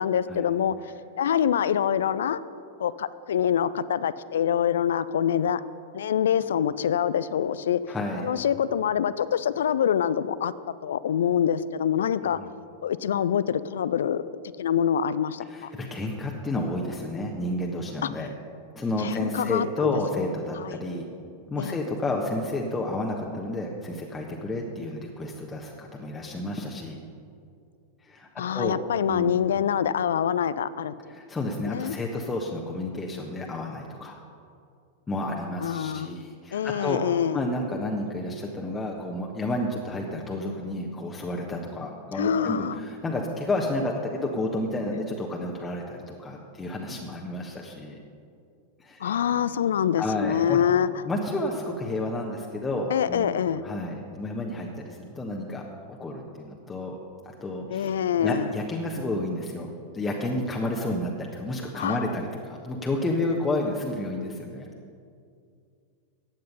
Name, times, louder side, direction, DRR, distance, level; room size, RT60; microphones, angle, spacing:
voice 1, 0.0-2.4 2.8-5.6 5.9-7.8 8.2-10.5 10.8-12.4 12.8-14.2 14.6-15.7 18.0-18.1 19.0-19.9 20.6-20.8 21.6-21.8 28.4-30.9 31.6-32.0 35.6-36.2 36.5-37.4 42.1-42.8 49.0-50.9 52.9-53.6 57.7-58.5 61.8-62.1, left 9 dB, 65° left, 16 dB, 0.4 m, -25 dB
voice 2, 7.9-8.3 12.3-12.5 15.5-18.3 18.7-21.1 21.5-27.0 28.0-28.8 29.1-29.3 31.1-34.2 35.1-37.0 37.3-48.0 48.8-49.2 50.0-50.6 51.0-57.0 57.2-64.7, left 2 dB, 15° left, -1 dB, 1.2 m, -31 dB
15.0 x 9.3 x 5.5 m, 2.4 s
figure-of-eight pair, 90°, 0 cm